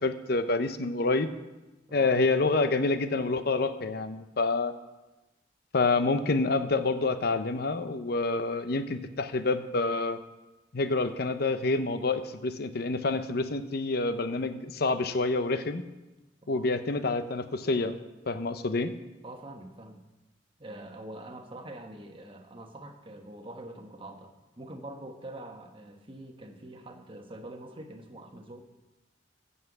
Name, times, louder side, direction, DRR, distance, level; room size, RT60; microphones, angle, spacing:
voice 1, 0.0-1.3 1.9-4.7 5.7-10.2 10.7-15.8 16.5-18.0 18.3-18.9, left 3 dB, 60° left, 10 dB, 0.7 m, -27 dB
voice 2, 19.2-20.0 20.6-28.6, right 1 dB, 30° right, 4 dB, 1.3 m, -44 dB
14.0 x 5.6 x 8.0 m, 1.1 s
head